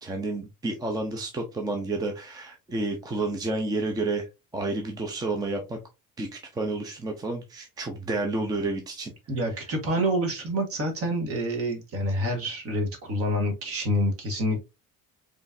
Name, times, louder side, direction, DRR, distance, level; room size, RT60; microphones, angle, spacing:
voice 1, 0.0-5.8 6.2-9.1, right 2 dB, 10° right, 3 dB, 0.6 m, -30 dB
voice 2, 9.3-14.6, equal, 40° right, 4 dB, 1.6 m, -27 dB
5.0 x 3.3 x 2.6 m, 0.24 s
cardioid pair, 180°, 34 cm